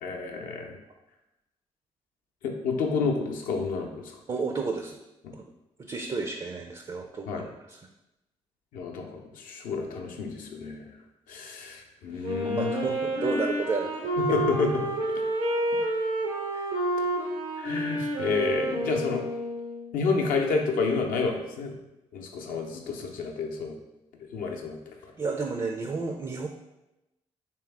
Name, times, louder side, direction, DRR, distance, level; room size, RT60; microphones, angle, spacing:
voice 1, 0.0-0.8 2.4-4.1 7.3-7.5 8.7-10.9 11.3-12.9 14.3-14.7 15.1-15.2 17.6-19.2 19.9-21.7 22.1-23.8 24.3-24.8, left 4 dB, 70° left, 2 dB, 0.6 m, -29 dB
voice 2, 4.3-5.0 5.3-5.4 5.8-7.8 12.3-13.9 14.3-14.4 16.5-16.7 25.2-26.5, right 4 dB, 30° right, 4 dB, 0.4 m, -32 dB
Wind instrument woodwind instrument, 12.2-19.9, right 1 dB, 80° right, 0.7 m, -29 dB
3.4 x 2.9 x 3.3 m, 0.94 s
hypercardioid pair, 40°, 15 cm